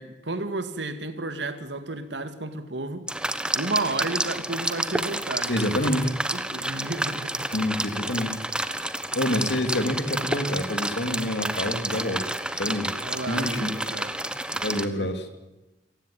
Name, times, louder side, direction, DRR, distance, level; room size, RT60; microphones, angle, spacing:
voice 1, 0.0-3.1 3.5-5.9 6.3-7.5 13.0-14.1 14.8-15.1, right 2 dB, 90° right, 2.3 m, -32 dB
sound 1, 3.1-14.9, right 1 dB, 5° right, 1.3 m, -30 dB
voice 2, 5.5-6.1 7.5-8.4 9.1-12.2 12.5-12.9 13.2-13.7 14.6-15.3, left 1 dB, 70° left, 3.1 m, -27 dB
27.5 x 16.0 x 9.0 m
head